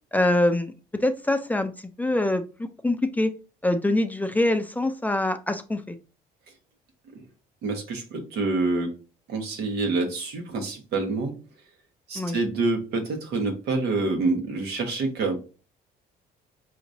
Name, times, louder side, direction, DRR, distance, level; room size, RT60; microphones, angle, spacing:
voice 1, 0.1-1.7 2.0-3.3 3.6-6.0 12.2-12.4, left 1 dB, 10° left, 7 dB, 0.4 m, -24 dB
voice 2, 7.6-8.9 9.3-11.4 12.1-15.4, right 3 dB, 80° right, 4 dB, 1.3 m, -27 dB
5.0 x 2.9 x 2.7 m, 0.33 s
cardioid pair, 110°, 17 cm